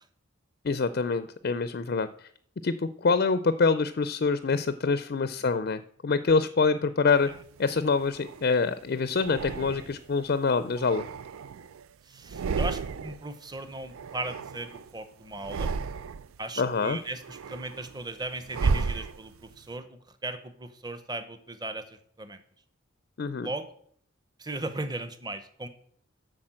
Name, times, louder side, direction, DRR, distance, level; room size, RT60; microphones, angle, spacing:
voice 1, 0.6-2.3 2.6-7.3 7.6-11.1 16.6-17.0 23.2-23.5, left 4 dB, 50° left, 13 dB, 0.4 m, -26 dB
sound 1, 7.3-8.5 9.2-10.1 10.6-11.9 12.2-13.3 13.5-14.9 15.3-16.4 16.8-19.6, right 4 dB, 85° right, 0.4 m, -33 dB
voice 2, 12.0-15.7 16.4-22.4 23.4-23.7 24.4-25.7, right 2 dB, 20° right, 10 dB, 0.8 m, -37 dB
8.6 x 6.4 x 7.6 m, 0.63 s
head